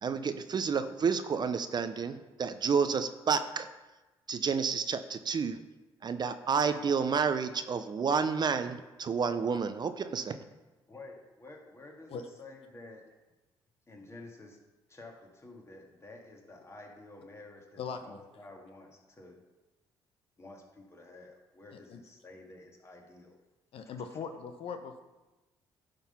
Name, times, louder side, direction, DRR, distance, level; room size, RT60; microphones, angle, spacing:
voice 1, 0.0-3.7 4.3-5.6 6.0-10.4, right 6 dB, 45° right, 10 dB, 0.5 m, -30 dB
voice 2, 10.9-13.1 13.9-14.6 14.9-19.4 20.4-23.4, left 2 dB, 25° left, 1 dB, 1.9 m, -51 dB
voice 3, 17.8-18.2 21.7-22.0 23.7-25.0, left 6 dB, 65° left, 7 dB, 0.8 m, -40 dB
10.5 x 3.9 x 5.7 m, 1.1 s
supercardioid pair, 70°, 11 cm